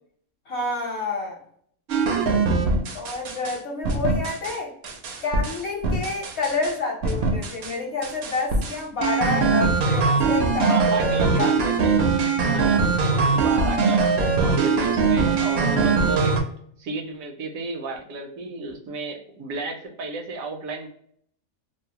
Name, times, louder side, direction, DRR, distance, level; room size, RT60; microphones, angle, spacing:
voice 1, 0.5-1.4 2.9-4.7 5.2-11.5, left 3 dB, 55° left, -1 dB, 0.9 m, -29 dB
sound 1, 1.9-3.6 3.8-4.6 4.8-6.7 7.0-7.7 8.0-16.4, right 4 dB, 65° right, 0.7 m, -22 dB
voice 2, 10.6-12.8 13.3-16.4 16.8-20.9, right 3 dB, 80° right, 4 dB, 1.0 m, -32 dB
2.6 x 2.0 x 2.8 m, 0.64 s
omnidirectional pair, 1.5 m